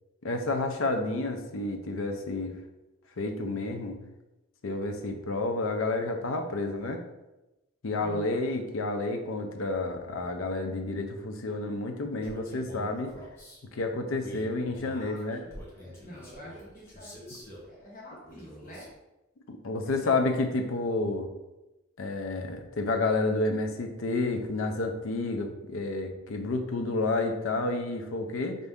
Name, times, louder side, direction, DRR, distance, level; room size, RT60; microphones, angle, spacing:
voice 1, 0.2-2.5 3.2-4.0 4.6-7.0 7.8-13.1 13.7-15.4 19.5-21.3 22.0-28.6, left 2 dB, 80° left, 5 dB, 0.5 m, -30 dB
voice 2, 8.0-8.4 14.9-18.9 19.9-20.2, equal, 40° left, -5 dB, 1.2 m, -48 dB
Male speech man speaking, 12.2-13.6 14.2-17.7 18.2-18.9, equal, 10° left, 0.8 m, -47 dB
4.3 x 2.6 x 3.5 m, 1.0 s
head